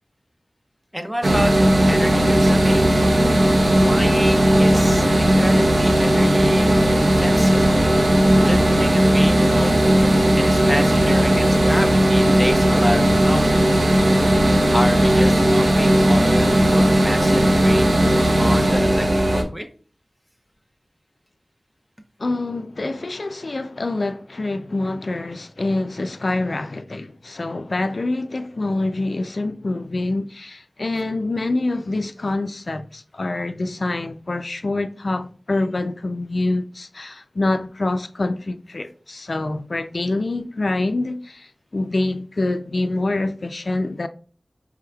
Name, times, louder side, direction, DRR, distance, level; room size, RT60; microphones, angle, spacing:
voice 1, 0.9-1.5 1.9-2.8 3.8-6.7 7.0-7.6 8.4-9.8 10.4-13.6 14.7-18.0 18.4-19.7, equal, 10° right, 0.7 m, -28 dB
sound 1, 1.2-19.4, right 1 dB, 85° right, 0.7 m, -16 dB
voice 2, 22.2-44.1, left 2 dB, 65° left, 0.3 m, -26 dB
4.7 x 3.4 x 2.3 m
wide cardioid pair, 65°, 0 cm